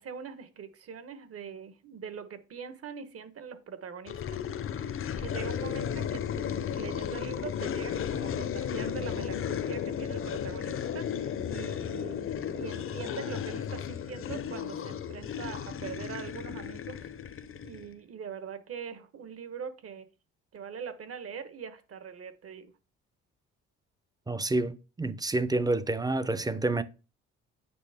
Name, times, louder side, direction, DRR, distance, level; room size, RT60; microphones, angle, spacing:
voice 1, 0.0-4.4 4.7-17.1 17.6-20.1 20.5-22.7, right 6 dB, 50° right, 1.2 m, -42 dB
sound 1, 4.1-17.9, left 8 dB, 45° left, 0.7 m, -34 dB
voice 2, 24.3-26.8, right 2 dB, 15° right, 0.6 m, -28 dB
8.4 x 5.1 x 3.5 m
cardioid pair, 90°, 30 cm